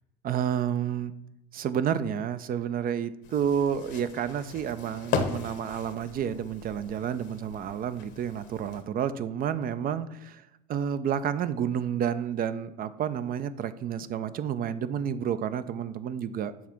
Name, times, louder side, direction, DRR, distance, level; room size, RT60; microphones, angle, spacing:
voice 1, 0.2-1.1 1.5-10.4 10.7-16.5, right 8 dB, 45° right, 13 dB, 0.5 m, -30 dB
sound 1, 3.2-8.8, left 6 dB, 55° left, 1.1 m, -37 dB
7.2 x 3.5 x 5.8 m, 0.88 s
hypercardioid pair, 80°, 21 cm